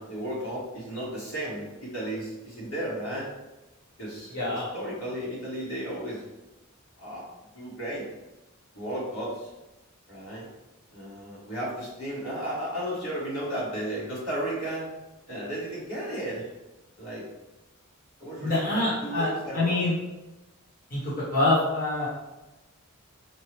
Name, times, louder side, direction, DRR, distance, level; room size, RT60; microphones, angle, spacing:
voice 1, 0.0-3.3 4.0-6.2 7.0-7.3 7.5-8.1 8.7-9.5 10.1-10.5 10.9-14.9 15.3-16.5 17.0-17.3 18.2-19.8, right 1 dB, 70° left, -7 dB, 1.5 m, -34 dB
voice 2, 4.3-4.7 18.4-19.9 20.9-21.0 21.3-22.1, left 2 dB, 40° left, -8 dB, 1.2 m, -25 dB
4.5 x 2.3 x 3.2 m, 1.0 s
head